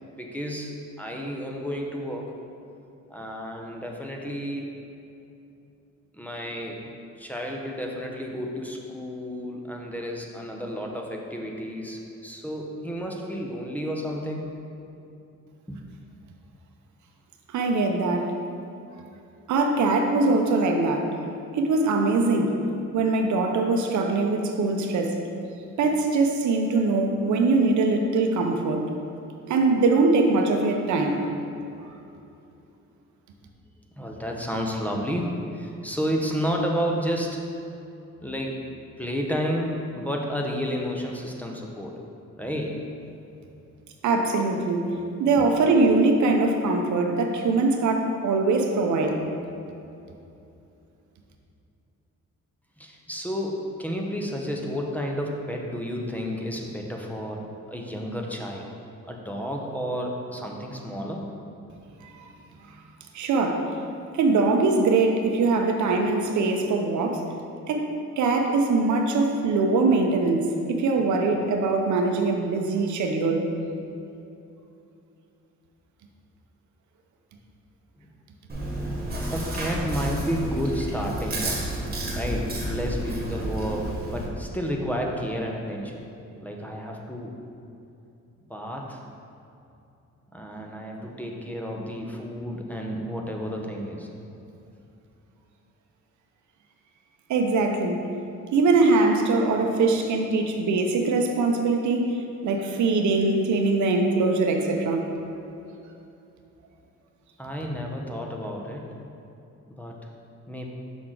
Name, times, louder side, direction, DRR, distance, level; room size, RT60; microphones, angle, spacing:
voice 1, 0.1-2.3 3.1-4.7 6.1-6.8 7.2-14.5 15.7-15.8 34.0-37.4 38.2-38.6 39.0-41.9 42.4-42.8 52.8-57.4 57.7-58.7 59.1-61.3 78.0-78.1 79.3-81.7 82.1-86.0 86.4-87.3 88.5-89.0 90.3-94.1 107.4-109.0 109.7-110.0 110.5-110.7, equal, 5° left, 0 dB, 0.8 m, -31 dB
voice 2, 17.5-18.3 19.5-21.1 21.5-22.6 22.9-25.2 25.8-28.9 29.5-31.3 44.0-44.9 45.2-49.2 62.0-62.3 63.1-63.7 64.1-67.2 67.7-67.9 68.2-73.5 97.3-98.0 98.5-102.2 102.4-105.1, right 3 dB, 70° right, 3 dB, 0.8 m, -22 dB
Chewing mastication, 78.5-84.3, right 1 dB, 30° right, 1.6 m, -30 dB
6.2 x 5.9 x 3.8 m, 2.8 s
cardioid pair, 90°, 30 cm